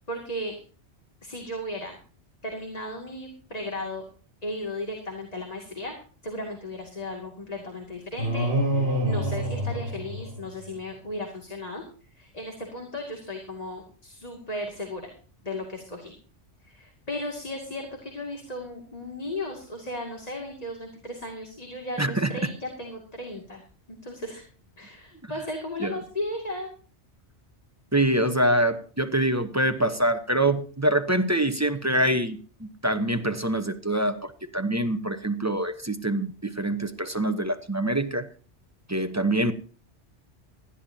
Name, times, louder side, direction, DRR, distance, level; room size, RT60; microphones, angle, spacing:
voice 1, 0.1-0.6 1.2-2.0 2.4-4.0 4.4-6.0 6.2-11.8 12.1-15.1 15.4-16.1 16.6-23.6 24.0-24.4 24.8-26.7, left 1 dB, 35° left, 1 dB, 2.5 m, -35 dB
sound 1, 8.2-10.7, right 1 dB, 65° right, 5.8 m, -27 dB
voice 2, 22.0-22.3 25.2-25.3 25.8-25.9 27.9-38.3 38.9-39.5, right 1 dB, 15° right, 8 dB, 0.9 m, -25 dB
19.5 x 13.5 x 2.8 m, 0.39 s
omnidirectional pair, 1.2 m